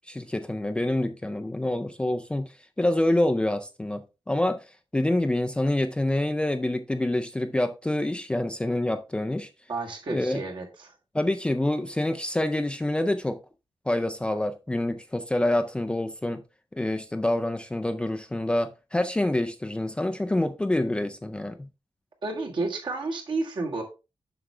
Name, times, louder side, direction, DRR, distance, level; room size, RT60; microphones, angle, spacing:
voice 1, 0.1-2.5 2.8-4.6 4.9-9.5 10.1-10.4 11.1-13.4 13.9-16.4 16.7-21.7, left 1 dB, 10° left, 0.4 m, -26 dB
voice 2, 9.7-10.9 22.2-23.8, right 3 dB, 55° right, 1.8 m, -31 dB
7.4 x 5.9 x 3.3 m
wide cardioid pair, 180°, 10 cm